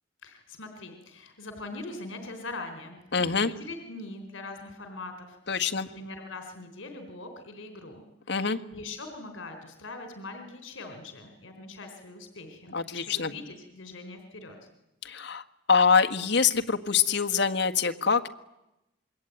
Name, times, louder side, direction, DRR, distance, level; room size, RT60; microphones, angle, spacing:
voice 1, 0.2-3.0 3.4-14.6, left 2 dB, 75° left, 6 dB, 3.6 m, -42 dB
voice 2, 3.1-3.5 5.5-5.9 8.3-8.6 12.7-13.3 15.0-18.3, left 5 dB, 60° left, 8 dB, 1.6 m, -25 dB
27.0 x 22.5 x 9.2 m, 0.90 s
head